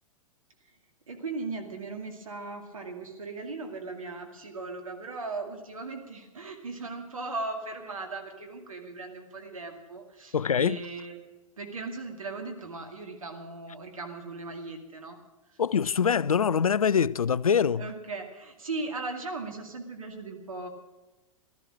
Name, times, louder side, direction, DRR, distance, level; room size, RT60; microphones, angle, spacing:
voice 1, 1.1-11.2 11.6-15.2 17.8-20.7, right 3 dB, 75° right, 2.3 m, -38 dB
voice 2, 10.3-10.8 15.6-17.8, left 7 dB, 80° left, 0.4 m, -24 dB
15.5 x 13.0 x 6.3 m
figure-of-eight pair, 105°, 18 cm